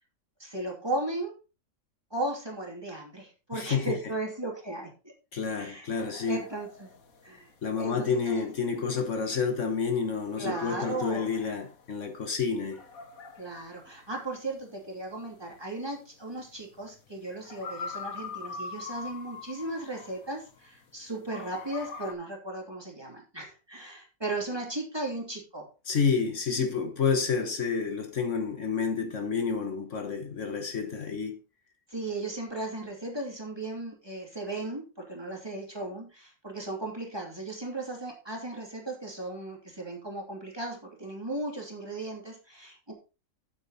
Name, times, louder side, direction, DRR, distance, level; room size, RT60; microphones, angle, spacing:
voice 1, 0.4-1.3 2.1-4.9 5.6-5.9 6.3-6.9 7.2-7.5 7.8-8.5 10.4-11.3 13.4-25.7 31.9-42.9, right 2 dB, 15° right, 2.9 m, -36 dB
voice 2, 3.5-4.0 5.3-6.4 7.6-12.8 25.9-31.4, left 5 dB, 60° left, 1.6 m, -29 dB
sound 1, 5.9-20.9 21.3-22.1, left 5 dB, 80° left, 1.7 m, -44 dB
8.9 x 8.2 x 4.1 m
omnidirectional pair, 1.4 m